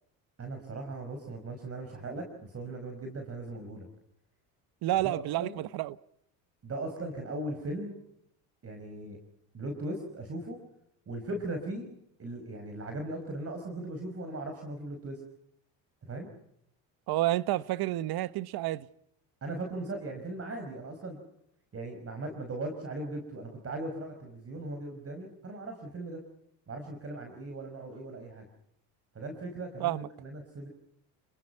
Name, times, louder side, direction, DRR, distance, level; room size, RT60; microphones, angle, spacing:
voice 1, 0.4-3.9 5.0-5.6 6.6-8.0 8.6-9.2 9.5-10.6 11.1-11.9 12.2-15.2 16.1-16.3 19.4-21.2 21.7-26.2 26.7-28.5 29.1-30.7, right 2 dB, 35° right, 5.1 m, -38 dB
voice 2, 4.8-6.0 17.1-18.9 29.8-30.1, right 15 dB, 60° right, 1.1 m, -30 dB
30.0 x 20.5 x 5.7 m
supercardioid pair, 100°, 42 cm